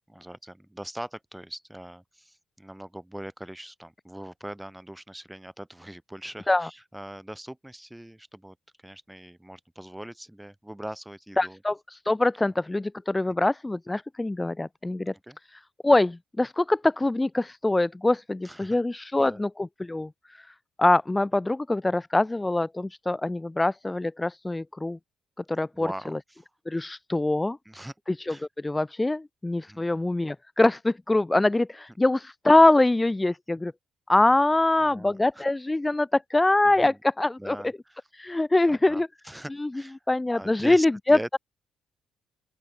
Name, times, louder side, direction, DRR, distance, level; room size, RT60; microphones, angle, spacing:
voice 1, 0.1-8.6 8.8-11.6 15.2-15.4 18.4-18.8 19.2-19.4 25.7-26.5 27.7-27.9 28.3-28.5 29.7-29.9 34.8-35.4 36.8-37.0 37.4-38.0 38.7-40.0 40.4-41.4, right 1 dB, 5° right, 1.9 m, -41 dB
voice 2, 11.4-15.1 15.8-25.0 25.5-25.9 26.7-27.6 28.1-33.7 34.1-37.6 38.1-39.1 39.6-39.7 40.1-41.4, left 2 dB, 15° left, 0.5 m, -24 dB
open air
cardioid pair, 90°, 0 cm